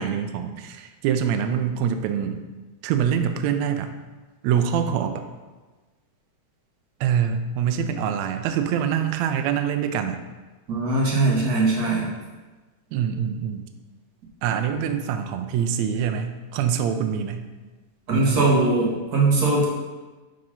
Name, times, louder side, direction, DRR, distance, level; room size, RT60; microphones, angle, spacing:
voice 1, 0.0-2.4 2.8-4.0 4.4-5.2 7.0-10.2 12.9-13.6 14.4-17.5 18.1-18.5, right 8 dB, 85° right, 7 dB, 1.6 m, -25 dB
voice 2, 10.7-12.1 18.1-19.7, right 2 dB, 60° right, -4 dB, 1.0 m, -20 dB
6.6 x 3.9 x 5.5 m, 1.3 s
omnidirectional pair, 3.7 m